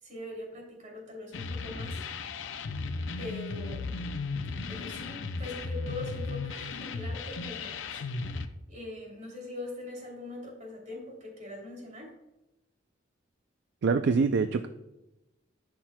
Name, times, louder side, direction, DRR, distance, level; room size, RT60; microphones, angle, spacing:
voice 1, 0.0-2.4 3.2-4.0 4.7-8.4 8.7-12.1, left 2 dB, 45° right, -1 dB, 2.9 m, -42 dB
sound 1, 1.3-8.5, left 4 dB, 85° left, 0.6 m, -36 dB
voice 2, 13.8-14.7, right 4 dB, 65° right, 8 dB, 0.4 m, -24 dB
12.5 x 5.9 x 2.2 m, 0.97 s
head